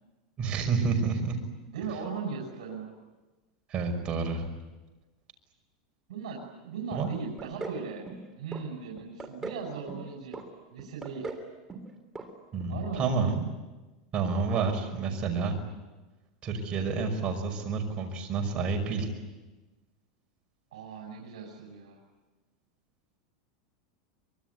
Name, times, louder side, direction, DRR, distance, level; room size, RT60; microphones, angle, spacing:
voice 1, 0.4-1.4 3.7-4.5 6.9-7.1 12.5-13.5 14.1-15.6 16.4-19.1, right 4 dB, 30° right, 3 dB, 5.7 m, -29 dB
voice 2, 1.6-2.9 6.1-8.1 8.3-10.4 10.7-11.3 12.7-13.3 20.7-22.0, right 5 dB, 80° right, -1 dB, 6.3 m, -38 dB
sound 1, 7.4-7.8 8.1-8.6 9.0-9.6 9.9-10.5 10.8-11.4 11.7-11.9 12.2-12.3 12.6-12.7, right 3 dB, 10° right, 3.4 m, -39 dB
25.0 x 23.0 x 9.6 m, 1.2 s
supercardioid pair, 150°, 3 cm